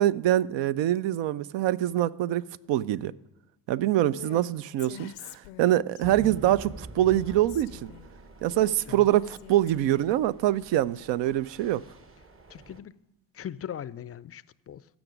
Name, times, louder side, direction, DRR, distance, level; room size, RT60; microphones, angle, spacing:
voice 1, 0.0-2.4 2.7-3.1 3.7-7.9 8.4-11.8, right 13 dB, 60° right, 0.5 m, -24 dB
Female speech woman speaking, 4.1-4.4 4.8-6.0 6.9-8.1 8.5-10.2, left 11 dB, 80° left, 0.6 m, -46 dB
sound 1, 6.0-12.8, right 2 dB, 25° right, 0.9 m, -46 dB
voice 2, 12.5-12.9 13.3-14.9, left 10 dB, 30° left, 0.4 m, -39 dB
15.5 x 6.1 x 5.1 m
hypercardioid pair, 45°, 48 cm